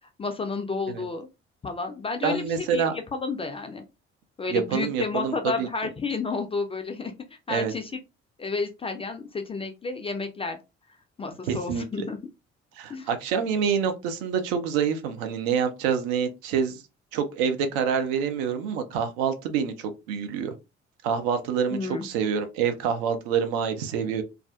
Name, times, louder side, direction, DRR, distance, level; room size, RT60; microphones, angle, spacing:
voice 1, 0.2-1.3 1.6-3.8 4.4-7.1 7.5-7.9 8.4-10.6 11.2-12.2 12.9-13.1 21.7-22.1, left 4 dB, 15° left, 0.3 m, -31 dB
voice 2, 2.2-3.0 4.5-5.7 7.5-7.7 11.5-11.8 12.8-16.8 17.1-20.5 21.0-24.2, right 7 dB, 65° right, 0.5 m, -27 dB
2.3 x 2.3 x 2.3 m
figure-of-eight pair, 45°, 34 cm